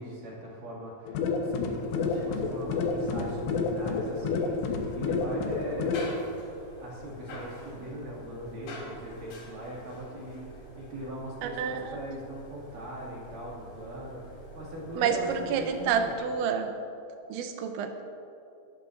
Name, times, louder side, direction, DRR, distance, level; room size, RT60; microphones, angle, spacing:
voice 1, 0.0-6.1 6.8-16.1, right 1 dB, 50° right, -4 dB, 3.6 m, -40 dB
sound 1, 1.1-6.1, left 4 dB, 85° left, 3.4 m, -29 dB
sound 2, 1.7-16.2, equal, 65° left, 4.7 m, -47 dB
voice 2, 11.4-12.0 14.9-16.8 17.3-18.0, right 7 dB, 85° right, 6 dB, 3.2 m, -29 dB
22.0 x 13.0 x 2.6 m, 2.7 s
omnidirectional pair, 5.1 m